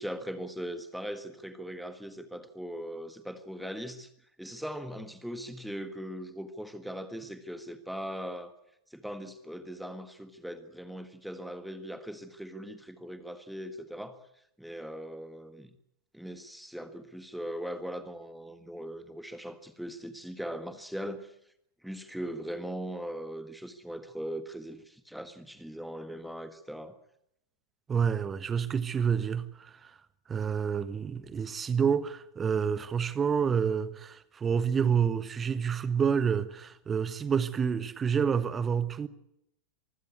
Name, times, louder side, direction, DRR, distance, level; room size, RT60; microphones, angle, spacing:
voice 1, 0.0-4.1 4.4-8.5 8.9-14.2 14.6-15.7 16.1-21.3 21.8-26.9, equal, ahead, 1.6 m, -40 dB
voice 2, 27.9-29.9 30.3-39.1, right 7 dB, 20° right, 1.3 m, -28 dB
24.5 x 16.0 x 8.3 m
figure-of-eight pair, 90°, 0 cm